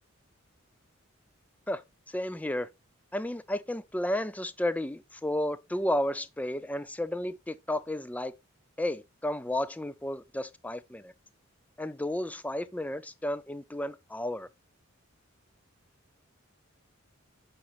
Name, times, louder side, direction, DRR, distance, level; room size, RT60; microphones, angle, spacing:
voice 1, 2.1-2.7 3.1-8.3 8.8-11.1 11.8-14.5, left 1 dB, 5° left, 0.4 m, -32 dB
8.7 x 5.1 x 3.0 m
head